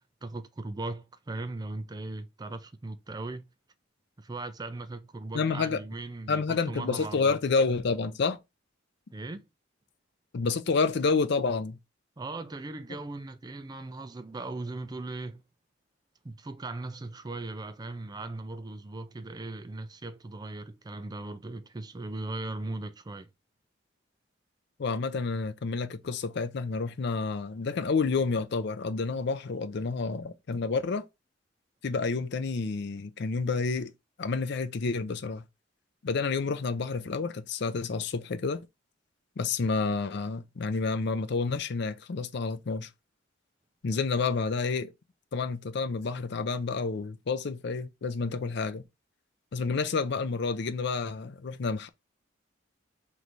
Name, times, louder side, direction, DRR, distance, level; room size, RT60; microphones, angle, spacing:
voice 1, 0.2-3.4 4.2-7.3 9.1-9.4 12.2-15.4 16.2-23.3, right 2 dB, 20° right, 0.4 m, -38 dB
voice 2, 5.3-5.8 6.3-8.4 10.3-11.8 24.8-31.1 31.8-33.9 34.2-35.4 36.0-38.6 39.4-42.9 43.8-44.9 45.3-48.8 49.5-51.9, left 4 dB, 60° left, 0.5 m, -29 dB
3.3 x 3.1 x 3.9 m
head